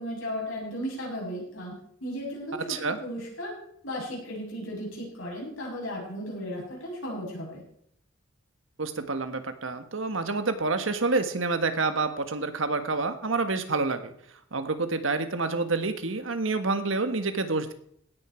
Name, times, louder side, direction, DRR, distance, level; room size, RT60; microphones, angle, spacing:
voice 1, 0.0-1.7 2.0-3.5 3.8-7.6, equal, 90° left, -2 dB, 7.5 m, -35 dB
voice 2, 8.8-14.1 14.5-17.7, right 3 dB, 85° right, 9 dB, 1.5 m, -28 dB
17.5 x 10.0 x 4.5 m, 0.67 s
head